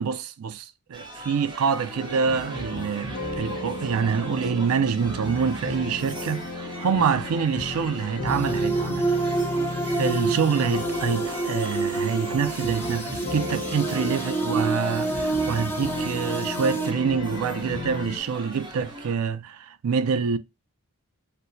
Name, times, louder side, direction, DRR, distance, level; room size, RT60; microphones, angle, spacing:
voice 1, 0.0-9.2 10.0-20.4, right 6 dB, 75° right, 0.4 m, -26 dB
sound 1, 0.9-19.1, right 1 dB, 20° right, 0.8 m, -41 dB
sound 2, 1.9-18.2, left 1 dB, 75° left, 1.0 m, -34 dB
sound 3, 8.3-16.9, right 3 dB, 10° left, 0.5 m, -28 dB
4.3 x 2.1 x 2.6 m
head